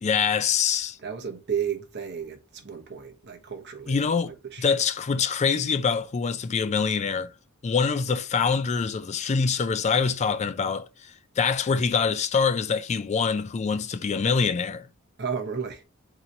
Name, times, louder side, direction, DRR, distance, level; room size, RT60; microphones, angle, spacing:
voice 1, 0.0-1.0 3.9-7.3 7.6-14.9, left 5 dB, 30° left, 0.3 m, -25 dB
voice 2, 1.0-4.7 15.2-15.8, right 7 dB, 55° right, 1.0 m, -33 dB
3.9 x 2.9 x 4.1 m
head